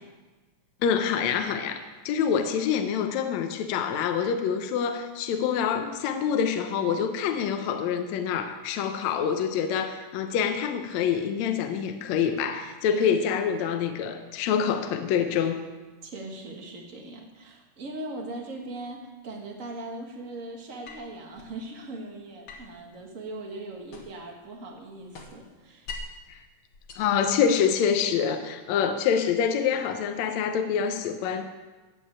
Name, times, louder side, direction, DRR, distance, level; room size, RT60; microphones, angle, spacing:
voice 1, 0.8-15.6 26.3-26.4 27.0-31.5, left 7 dB, 70° left, 7 dB, 2.0 m, -26 dB
voice 2, 16.0-25.9, right 2 dB, 35° right, 1 dB, 1.6 m, -40 dB
sound 1, 20.8-21.6 22.5-24.3 24.6-26.3 26.7-27.8, left 3 dB, 50° left, 2.1 m, -44 dB
14.5 x 5.3 x 8.6 m, 1.2 s
omnidirectional pair, 3.5 m